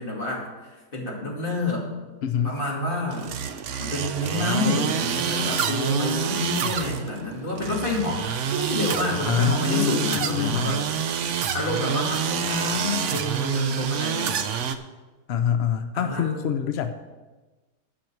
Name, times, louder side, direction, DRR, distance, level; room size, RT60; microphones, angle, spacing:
voice 1, 0.0-1.9 2.4-3.4 3.8-10.8 11.5-14.4 15.9-16.3, left 2 dB, 30° left, -3 dB, 2.6 m, -28 dB
voice 2, 2.2-2.6 9.3-10.8 15.3-16.9, left 8 dB, 70° left, 9 dB, 0.6 m, -25 dB
sound 1, 3.1-14.8, right 8 dB, 65° right, 0.8 m, -28 dB
10.0 x 5.9 x 7.7 m, 1.2 s
omnidirectional pair, 1.8 m